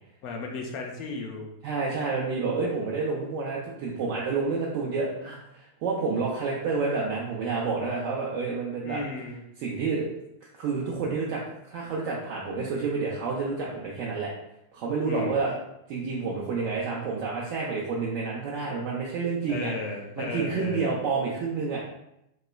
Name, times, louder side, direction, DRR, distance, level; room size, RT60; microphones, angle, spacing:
voice 1, 0.2-1.5 8.8-9.4 15.0-15.4 19.5-20.9, left 3 dB, 45° left, 1 dB, 0.4 m, -35 dB
voice 2, 1.6-9.0 9.6-10.1 10.5-11.4 11.7-14.3 14.7-15.5 15.9-19.7 20.2-21.8, right 4 dB, 45° right, -4 dB, 0.5 m, -29 dB
3.0 x 2.9 x 2.3 m, 0.84 s
figure-of-eight pair, 90°, 0 cm